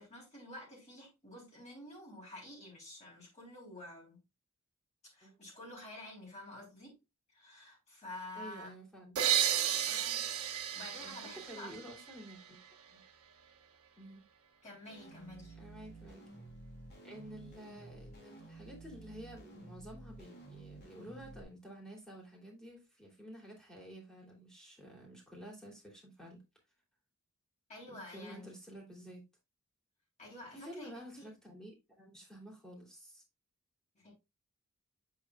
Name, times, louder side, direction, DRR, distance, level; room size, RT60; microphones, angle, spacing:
voice 1, 0.0-4.2 5.1-7.0 7.3-8.7 9.9-11.7 14.6-15.6 27.7-28.5 30.2-31.3 33.9-34.1, left 1 dB, 30° left, 3.3 m, -50 dB
voice 2, 8.3-9.5 11.0-12.6 12.9-13.0 14.0-14.2 15.6-16.3 17.0-26.4 27.9-29.2 30.5-33.2, equal, 5° left, 2.9 m, -51 dB
sound 1, 9.2-12.7, right 10 dB, 85° right, 1.1 m, -33 dB
sound 2, 14.8-21.4, right 2 dB, 50° left, 3.2 m, -52 dB
7.9 x 6.8 x 2.3 m
head